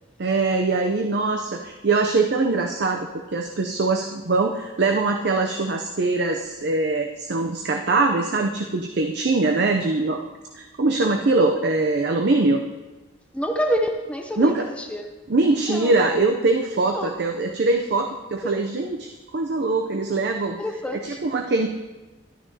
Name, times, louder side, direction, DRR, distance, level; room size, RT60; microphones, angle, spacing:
voice 1, 0.2-10.2 10.5-12.6 14.4-14.7 15.3-20.6 21.0-21.7, right 3 dB, 55° right, 3 dB, 0.5 m, -22 dB
voice 2, 13.3-15.1 15.6-15.9 16.9-17.2 18.4-18.7 20.6-21.2, equal, 5° left, 4 dB, 0.5 m, -27 dB
12.5 x 10.0 x 2.8 m, 1.2 s
head